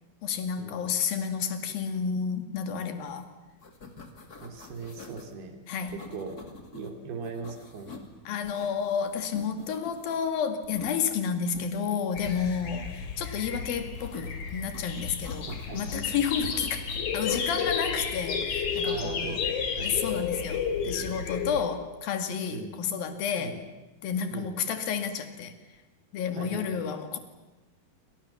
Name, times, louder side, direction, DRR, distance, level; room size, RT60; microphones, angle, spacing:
voice 1, 0.2-3.3 5.7-6.0 8.3-19.4 19.8-23.6 24.0-25.5 26.1-27.2, left 7 dB, 70° left, 8 dB, 4.0 m, -31 dB
sound 1, 3.1-3.2 3.5-5.3 5.9-6.9 7.2-8.1 8.4-10.3 10.6-11.7 13.9-14.8 15.2-16.0 16.4-17.5 18.3-18.7, left 3 dB, 25° left, 2.8 m, -46 dB
voice 2, 4.4-5.6 5.9-6.4 6.7-8.0 15.5-16.1 18.8-20.3 22.5-22.7 23.4-23.6 24.3-24.5 26.4-26.8, right 4 dB, 90° right, 6 dB, 5.1 m, -39 dB
sound 2, 12.2-21.6, left 6 dB, 50° left, 3.7 m, -32 dB
29.0 x 26.5 x 7.3 m, 1.1 s
omnidirectional pair, 4.4 m